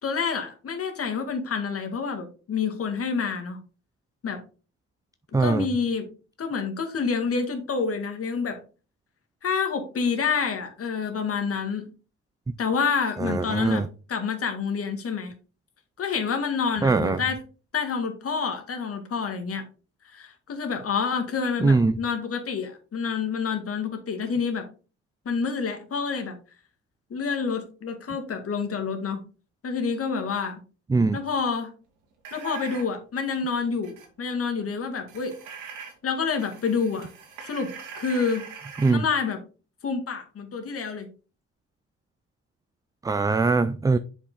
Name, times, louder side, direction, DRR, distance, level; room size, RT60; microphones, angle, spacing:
voice 1, 0.0-3.6 4.2-4.4 5.4-6.1 6.4-8.6 9.4-11.9 12.6-15.3 16.0-17.4 17.7-19.6 20.0-24.7 25.3-26.4 27.1-29.2 29.6-30.6 31.1-31.8 32.3-35.4 36.0-37.1 37.4-38.5 38.9-39.4 39.8-41.1, left 5 dB, 50° left, 6 dB, 1.9 m, -28 dB
voice 2, 5.3-5.7 13.2-13.9 16.8-17.2 21.6-22.0 30.9-31.2 38.8-39.0 43.0-44.0, right 3 dB, 10° right, 12 dB, 0.3 m, -21 dB
sound 1, 32.2-32.9 33.8-34.1 35.1-35.9 36.3-38.9, right 6 dB, 90° right, 2.4 m, -41 dB
6.9 x 5.2 x 3.9 m, 0.35 s
cardioid pair, 90°, 30 cm